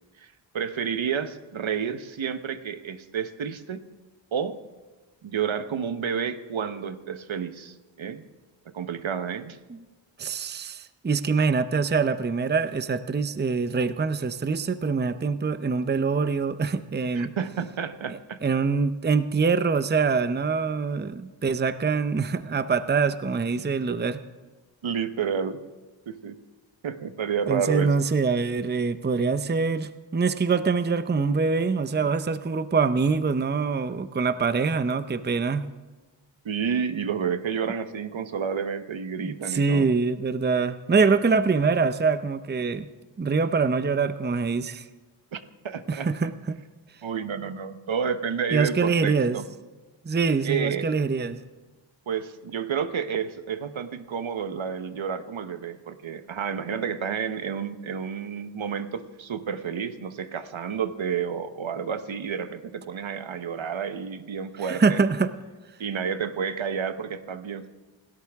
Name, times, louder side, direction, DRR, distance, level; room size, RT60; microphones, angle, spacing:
voice 1, 0.2-3.8 4.3-4.6 5.2-8.2 8.7-9.6 17.1-18.4 23.9-24.0 24.8-25.6 26.1-26.4 26.8-27.9 36.4-39.9 45.3-45.4 45.6-46.1 47.0-49.4 50.4-50.9 52.1-65.0 65.8-67.7, right 7 dB, 70° right, 10 dB, 1.0 m, -30 dB
voice 2, 10.2-17.3 18.1-24.2 27.5-35.6 39.2-42.9 43.2-44.8 45.9-46.6 48.5-49.4 50.0-51.4 64.6-65.3, right 4 dB, 20° right, 12 dB, 0.6 m, -24 dB
27.5 x 13.0 x 3.5 m, 1.2 s
wide cardioid pair, 70°, 48 cm